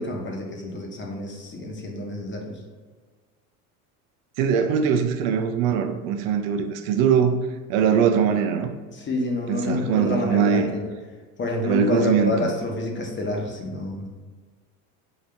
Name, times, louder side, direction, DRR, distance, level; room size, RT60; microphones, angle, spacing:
voice 1, 0.0-2.6 8.9-10.9 11.4-14.1, left 2 dB, 30° left, 0 dB, 1.0 m, -28 dB
voice 2, 4.4-7.4 7.7-8.7 9.5-10.7 11.6-12.5, right 7 dB, 80° right, 6 dB, 0.6 m, -21 dB
3.9 x 2.8 x 4.3 m, 1.4 s
supercardioid pair, 90°, 41 cm